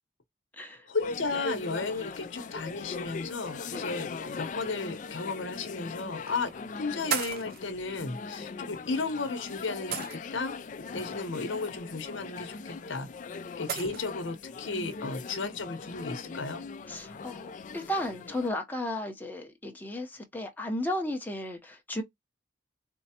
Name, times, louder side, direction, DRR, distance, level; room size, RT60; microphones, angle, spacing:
voice 1, 0.9-10.5 10.9-13.1 13.6-16.6, left 3 dB, 75° left, 0.9 m, -34 dB
sound 1, 1.0-18.5, left 4 dB, 40° left, 0.3 m, -40 dB
sound 2, 6.3-6.5 7.1-7.6 9.0-9.1 9.9-10.5 12.5-12.6 13.7-14.0, right 8 dB, 50° right, 0.4 m, -34 dB
voice 2, 16.9-22.0, left 1 dB, 10° left, 0.8 m, -34 dB
4.4 x 2.0 x 2.8 m
head